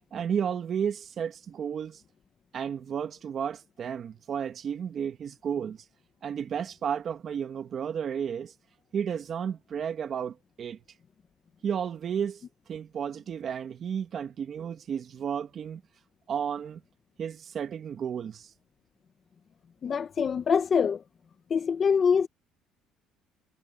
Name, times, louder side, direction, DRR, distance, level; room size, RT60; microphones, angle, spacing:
voice 1, 0.1-2.0 2.5-5.8 6.2-8.5 8.9-10.8 11.6-12.4 12.7-15.8 16.3-16.8 17.2-18.5, right 8 dB, 40° right, 2.1 m, -32 dB
voice 2, 19.8-21.0 21.5-22.3, left 6 dB, 35° left, 1.5 m, -24 dB
cardioid pair, 140°, 0 cm